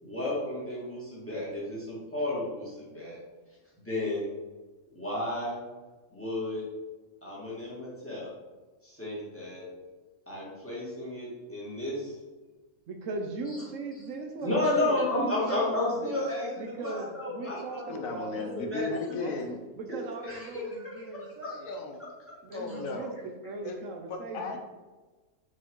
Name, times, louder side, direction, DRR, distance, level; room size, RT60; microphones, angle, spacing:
voice 1, 0.0-3.2 3.8-4.3 4.9-5.6 6.1-6.6 7.2-8.3 8.8-9.7 10.3-12.1 13.5-13.6 14.4-19.2 19.9-20.0 20.2-21.6 22.5-22.8, left 2 dB, 10° left, -7 dB, 2.1 m, -33 dB
voice 2, 12.9-16.1 16.6-18.4 18.9-19.5 19.8-21.7 22.4-24.6, right 3 dB, 70° right, 4 dB, 1.1 m, -38 dB
voice 3, 17.9-19.6 21.7-22.0 22.5-23.1 23.6-23.8 24.1-24.6, left 3 dB, 85° left, 4 dB, 1.3 m, -35 dB
6.2 x 4.7 x 3.8 m, 1.2 s
omnidirectional pair, 1.4 m